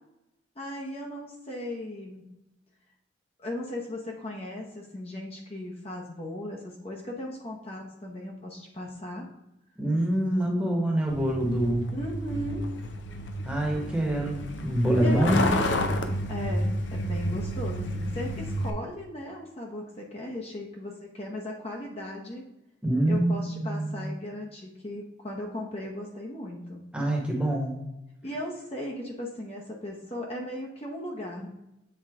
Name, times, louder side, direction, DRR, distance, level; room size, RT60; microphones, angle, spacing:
voice 1, 0.6-2.3 3.4-9.3 11.9-12.7 15.0-15.6 16.3-22.4 23.1-26.8 28.2-31.5, left 1 dB, 30° left, -1 dB, 0.8 m, -37 dB
voice 2, 9.8-11.9 13.4-15.5 22.8-24.1 26.9-27.8, right 1 dB, 5° right, -1 dB, 1.2 m, -25 dB
Truck, 11.1-18.7, left 1 dB, 70° left, 0.7 m, -31 dB
7.8 x 3.9 x 3.6 m, 0.90 s
head